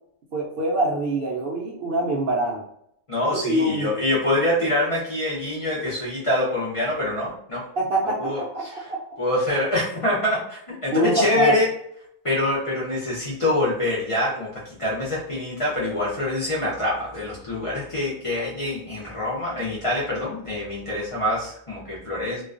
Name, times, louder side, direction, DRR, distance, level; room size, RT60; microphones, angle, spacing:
voice 1, 0.3-2.6 3.3-3.9 7.8-8.8 10.9-11.6, right 1 dB, 60° right, -3 dB, 0.6 m, -24 dB
voice 2, 3.1-7.7 8.2-8.9 9.2-11.7 12.2-22.4, left 1 dB, 50° left, -6 dB, 0.4 m, -25 dB
2.3 x 2.2 x 2.4 m, 0.70 s
omnidirectional pair, 1.3 m